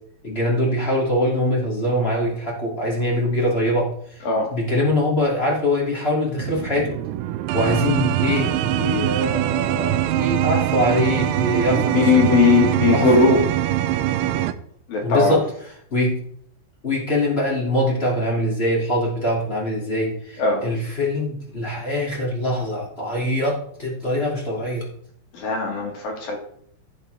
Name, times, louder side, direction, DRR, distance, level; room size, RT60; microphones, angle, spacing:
voice 1, 0.2-4.2 4.5-6.9 7.5-12.4 12.9-13.3 15.0-15.5 15.9-16.2 16.8-24.9, left 1 dB, 25° left, -3 dB, 1.4 m, -23 dB
sound 1, 6.3-14.5, right 13 dB, 85° right, 2.4 m, -23 dB
voice 2, 11.7-13.4 14.9-15.4 20.4-20.7 25.4-26.4, left 4 dB, 60° left, 0 dB, 3.2 m, -19 dB
15.5 x 6.9 x 3.4 m, 0.64 s
omnidirectional pair, 5.3 m